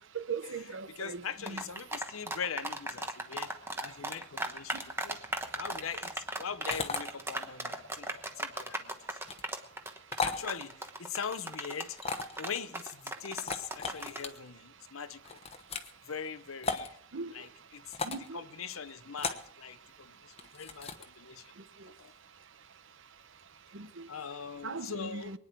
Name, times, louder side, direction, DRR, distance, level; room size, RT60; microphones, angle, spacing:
voice 1, 0.1-1.6 17.1-17.3 18.0-18.2 23.7-24.1 24.6-25.4, right 4 dB, 65° right, 0.8 m, -39 dB
voice 2, 1.0-3.5 3.8-5.2 5.6-9.2 10.2-12.0 12.4-15.4 16.1-17.0 17.3-21.5 21.9-22.1 24.1-25.4, left 6 dB, 80° left, 0.8 m, -41 dB
sound 1, 1.5-14.3, right 2 dB, 10° right, 1.1 m, -36 dB
sound 2, 6.7-7.0 9.2-9.4 10.1-10.4 12.0-12.4 13.3-14.3 15.2-15.9 16.6-16.9 17.9-18.3 19.2-19.5 20.4-21.0, left 4 dB, 30° left, 1.0 m, -35 dB
23.5 x 9.7 x 4.5 m
head